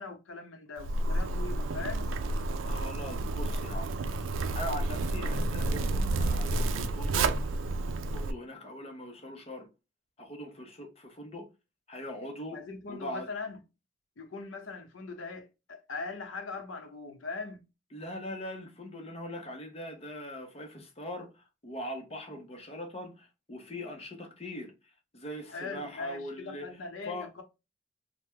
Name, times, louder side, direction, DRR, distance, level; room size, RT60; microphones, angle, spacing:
voice 1, 0.0-2.1 12.5-13.6 14.2-17.7 25.5-27.4, left 4 dB, 90° left, 0.7 m, -40 dB
Zipper (clothing), 0.8-8.3, right 2 dB, 85° right, 0.4 m, -30 dB
voice 2, 2.6-4.3 4.5-7.3 8.1-9.7 10.2-11.5 11.9-12.6 12.9-13.3 17.9-26.7 27.1-27.4, left 1 dB, 30° left, 0.7 m, -41 dB
3.3 x 2.1 x 3.2 m
head